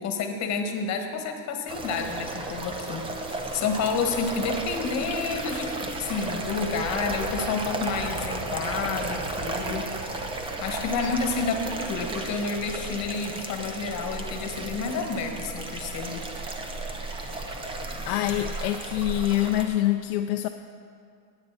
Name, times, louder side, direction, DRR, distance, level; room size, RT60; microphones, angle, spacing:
voice 1, 0.0-16.2, left 5 dB, 35° left, 5 dB, 1.4 m, -30 dB
sound 1, 1.7-19.7, right 2 dB, 10° right, 0.5 m, -34 dB
voice 2, 18.1-20.5, left 14 dB, 60° left, 6 dB, 0.6 m, -25 dB
16.0 x 9.1 x 4.1 m, 2.3 s
supercardioid pair, 145°, 50 cm